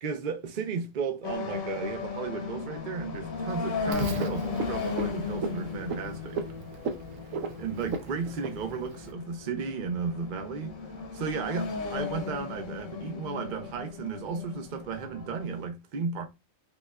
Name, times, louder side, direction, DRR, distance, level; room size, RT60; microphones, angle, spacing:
voice 1, 0.0-6.4 7.6-10.7 11.1-16.2, right 5 dB, 50° right, 0.6 m, -34 dB
sound 1, 1.2-15.6, left 5 dB, 85° left, 1.2 m, -36 dB
Frog, 3.9-9.1, right 4 dB, 75° right, 1.0 m, -36 dB
5.0 x 2.3 x 2.3 m
omnidirectional pair, 1.4 m